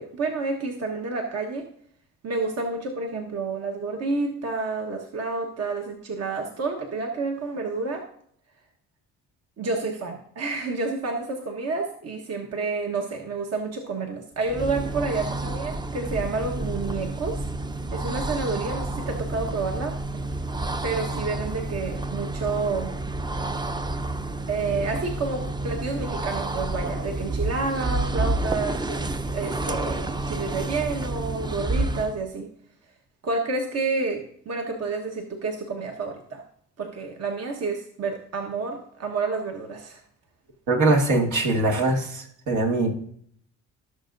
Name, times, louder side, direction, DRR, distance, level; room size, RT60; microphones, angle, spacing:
voice 1, 0.0-1.7 2.2-8.0 9.6-17.5 17.9-20.2 20.8-22.9 24.5-29.1 29.3-32.5 33.2-36.4 36.8-40.0, right 3 dB, 55° right, 2 dB, 1.3 m, -29 dB
sound 1, 14.4-32.2, right 2 dB, 15° right, 0.5 m, -30 dB
voice 2, 40.7-42.9, right 2 dB, 80° right, 0 dB, 2.0 m, -22 dB
16.5 x 6.7 x 2.6 m, 0.64 s
cardioid pair, 90°, 30 cm